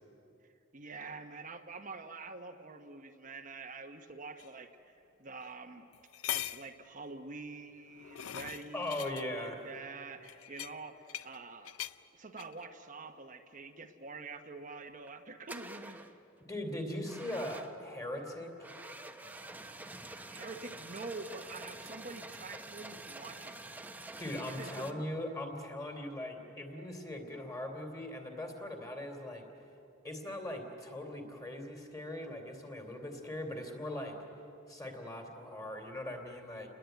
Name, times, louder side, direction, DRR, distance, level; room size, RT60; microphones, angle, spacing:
voice 1, 0.7-4.9 5.2-5.9 6.3-11.8 12.1-16.0 20.0-23.5 24.4-25.0, right 3 dB, 40° right, 4 dB, 1.1 m, -46 dB
sound 1, 4.4-4.5 5.4-5.5 5.9-6.7 7.7-9.2 10.2-11.4 11.6-12.0 12.4-12.6, left 12 dB, 80° left, 0.6 m, -41 dB
voice 2, 8.7-9.7 16.5-18.5 24.2-29.4 30.0-34.2 34.7-36.7, left 1 dB, 15° left, 4 dB, 3.1 m, -40 dB
sound 2, 14.9-15.1 15.5-16.2 17.0-17.9 18.6-24.9, right 2 dB, 10° right, 1.0 m, -47 dB
29.0 x 21.0 x 9.2 m, 2.9 s
head